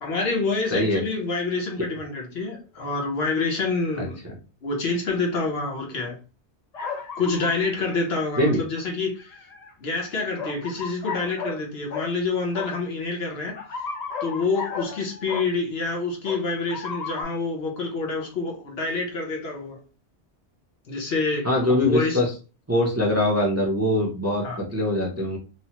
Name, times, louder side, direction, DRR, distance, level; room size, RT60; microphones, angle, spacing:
voice 1, 0.0-4.2 4.6-6.2 7.2-9.3 9.8-13.6 14.2-19.8 20.9-22.2 24.4-24.6, left 3 dB, 70° left, 0 dB, 1.1 m, -27 dB
sound 1, 6.7-8.1 9.2-9.7 10.4-11.6 11.9-12.1 12.5-12.7 13.6-15.5 16.3-17.2, left 5 dB, 50° left, 0.5 m, -34 dB
voice 2, 21.4-22.3 22.7-25.4, left 1 dB, 20° right, -2 dB, 0.5 m, -22 dB
3.1 x 2.1 x 2.9 m, 0.33 s
omnidirectional pair, 1.1 m